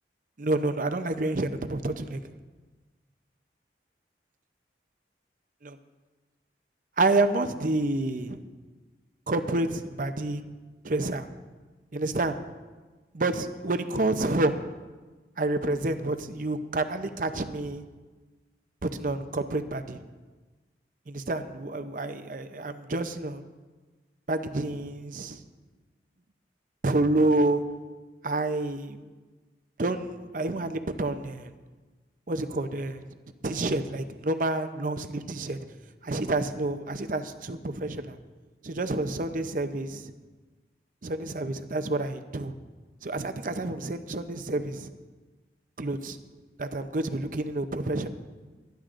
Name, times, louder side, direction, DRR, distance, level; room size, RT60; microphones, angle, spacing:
voice 1, 0.4-2.2 5.6-5.8 7.0-8.4 9.3-10.5 10.8-11.3 11.9-12.4 13.1-14.6 15.4-17.8 18.8-20.0 21.1-23.4 24.3-25.4 26.8-27.7 28.2-29.0 29.8-31.5 32.3-33.0 33.4-35.6 36.0-38.2 38.6-40.1 41.0-42.5 43.0-44.9 45.8-46.2 46.6-48.1, right 2 dB, 45° right, 9 dB, 0.6 m, -28 dB
24.5 x 10.5 x 2.5 m, 1.3 s
head